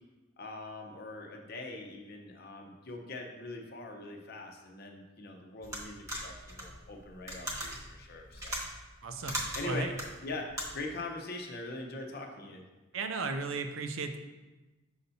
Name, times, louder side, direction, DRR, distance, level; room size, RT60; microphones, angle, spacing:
voice 1, 0.4-8.6 9.5-9.9 10.2-10.5 10.7-12.6, left 2 dB, 50° left, 2 dB, 0.7 m, -42 dB
sound 1, 5.6-11.0, equal, 15° right, 1.1 m, -39 dB
voice 2, 9.0-9.9 12.9-14.2, right 3 dB, 70° right, 7 dB, 0.6 m, -35 dB
6.5 x 5.6 x 2.7 m, 1.2 s
head